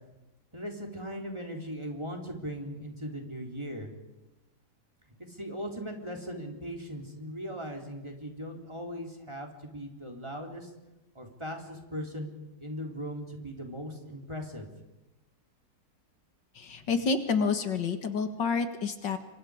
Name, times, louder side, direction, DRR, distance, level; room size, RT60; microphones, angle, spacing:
voice 1, 0.5-3.9 5.3-10.7 11.2-12.3 12.6-14.7, equal, 15° right, 1 dB, 3.8 m, -39 dB
voice 2, 16.6-19.2, left 5 dB, 80° left, 8 dB, 2.4 m, -29 dB
28.0 x 25.0 x 5.1 m, 1.1 s
omnidirectional pair, 1.9 m